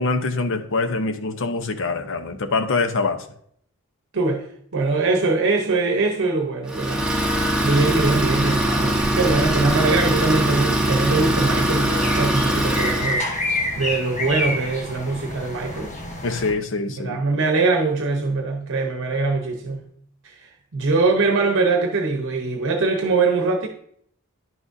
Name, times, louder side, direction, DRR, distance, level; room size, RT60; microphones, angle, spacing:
voice 1, 0.0-3.2 16.2-17.2, left 3 dB, 60° left, 0.7 m, -24 dB
voice 2, 4.1-4.5 4.7-7.1 7.6-13.2 13.8-15.9 17.0-19.8 20.2-23.7, right 3 dB, 60° right, 0.9 m, -22 dB
Idling, 6.7-13.2, right 1 dB, 5° right, 1.2 m, -22 dB
sound 1, 7.3-16.5, left 1 dB, 35° left, 1.2 m, -30 dB
11.0 x 6.1 x 2.6 m
head